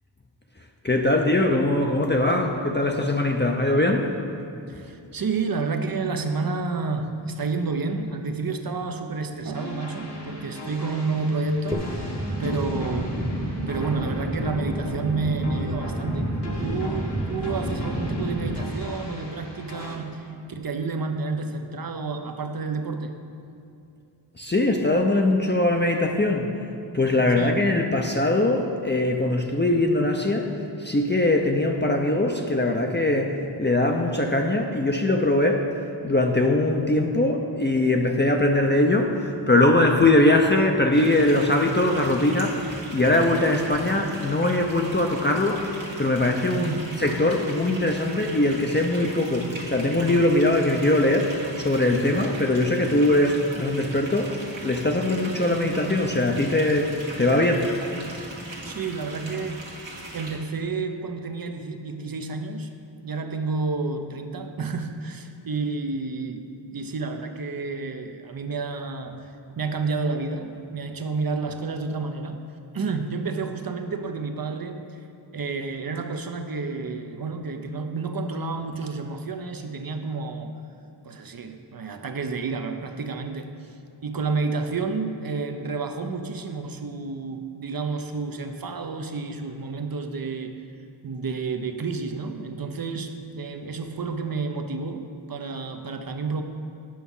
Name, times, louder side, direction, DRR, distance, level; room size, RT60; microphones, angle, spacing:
voice 1, 0.8-4.1 24.4-26.5 26.9-30.5 30.8-35.6 36.0-54.4 54.6-57.7, left 1 dB, 25° left, 1 dB, 0.6 m, -21 dB
voice 2, 4.7-13.2 13.7-16.3 16.6-23.1 27.4-27.6 46.6-46.8 58.6-62.7 63.0-66.4 66.7-72.4 72.7-75.0 75.3-80.5 81.0-83.7 84.0-90.5 91.0-96.4, right 4 dB, 50° right, 6 dB, 0.7 m, -30 dB
sound 1, 9.5-20.0, left 1 dB, 65° left, 1.3 m, -39 dB
sound 2, 11.7-18.7, right 1 dB, 10° right, 1.0 m, -29 dB
sound 3, 40.9-60.4, right 1 dB, 80° right, 1.4 m, -39 dB
8.8 x 5.9 x 5.5 m, 2.6 s
wide cardioid pair, 50°, 45 cm